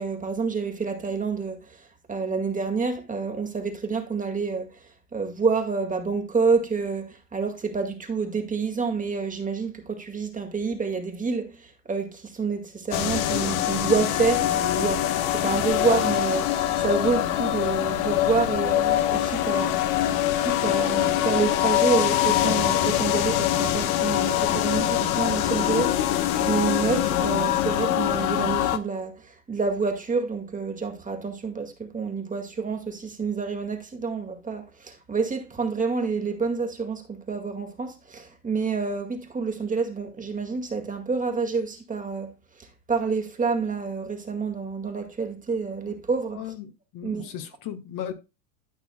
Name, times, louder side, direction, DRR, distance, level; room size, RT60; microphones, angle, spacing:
voice 1, 0.0-20.1 20.4-46.5 47.0-47.4, right 4 dB, 15° right, 2.0 m, -28 dB
sound 1, 12.9-28.8, left 12 dB, 60° left, 1.3 m, -24 dB
voice 2, 46.3-48.1, left 10 dB, 40° left, 1.7 m, -36 dB
13.0 x 6.0 x 2.2 m
hypercardioid pair, 100°, 48 cm